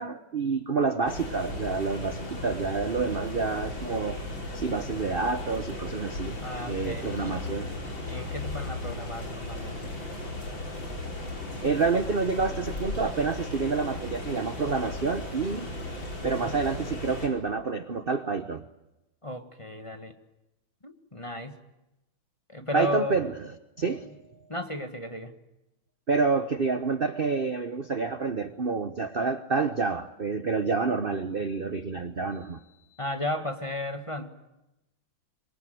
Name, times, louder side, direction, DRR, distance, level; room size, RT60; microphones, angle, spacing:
voice 1, 0.0-4.2 4.5-7.7 11.6-15.7 16.2-18.6 22.7-23.3 23.8-24.1 26.1-32.6, right 4 dB, 35° right, 10 dB, 1.0 m, -28 dB
sound 1, 1.1-17.3, left 2 dB, 70° left, 5.7 m, -36 dB
voice 2, 6.4-7.4 8.1-9.9 16.2-16.5 19.2-20.1 20.8-21.6 22.5-23.1 24.5-25.3 33.0-34.3, left 1 dB, 15° left, 7 dB, 1.6 m, -34 dB
26.5 x 23.0 x 9.4 m, 0.94 s
omnidirectional pair, 2.2 m